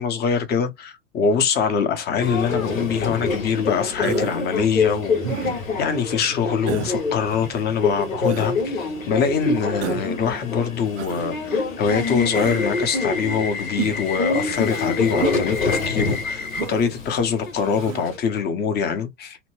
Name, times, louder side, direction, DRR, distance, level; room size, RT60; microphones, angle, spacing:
voice 1, 0.0-19.4, left 6 dB, 25° left, 0.7 m, -24 dB
Subway metro underground, 2.2-18.2, left 4 dB, 85° left, 1.0 m, -26 dB
Human voice, 4.0-4.5 5.2-5.7 6.7-7.0 8.2-8.5 9.8-10.1 11.0-11.3 12.3-12.7 13.8-14.1 15.2-15.4 16.5-16.8 17.8-18.1, right 11 dB, 60° right, 0.5 m, -30 dB
2.9 x 2.1 x 3.0 m
hypercardioid pair, 100°, 39 cm